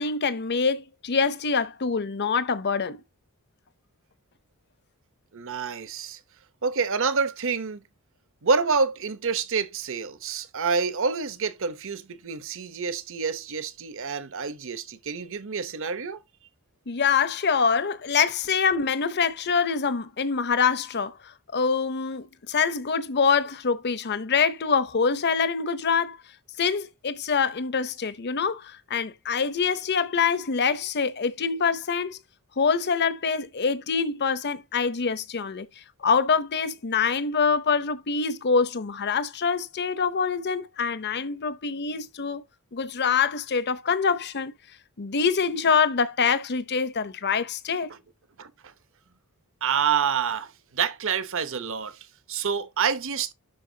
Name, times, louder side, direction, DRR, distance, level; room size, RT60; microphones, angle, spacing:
voice 1, 0.0-3.0 16.9-26.2 26.6-32.2 32.6-35.7 36.0-42.4 42.7-44.5 45.0-47.9, left 5 dB, 50° left, 0.7 m, -25 dB
voice 2, 5.3-6.2 6.6-7.8 8.4-16.2 47.9-48.0 48.4-48.7 49.6-53.3, right 5 dB, 60° right, 0.9 m, -28 dB
11.5 x 4.5 x 2.8 m
head